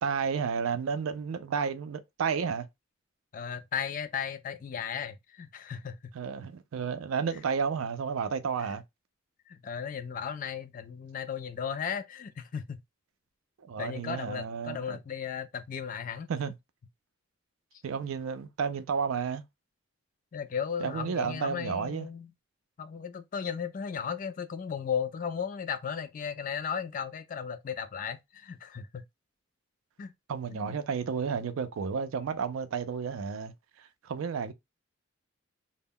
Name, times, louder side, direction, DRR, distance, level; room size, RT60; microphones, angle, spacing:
voice 1, 0.0-2.7 6.1-8.8 13.7-15.0 16.3-16.5 17.8-19.4 20.8-22.1 30.3-34.5, right 6 dB, 85° right, 0.4 m, -32 dB
voice 2, 3.3-6.1 8.6-8.7 9.5-12.8 13.8-16.3 20.3-22.3 22.8-29.0 30.0-30.1 30.5-30.8, left 7 dB, 40° left, 0.3 m, -35 dB
2.1 x 2.1 x 3.5 m
head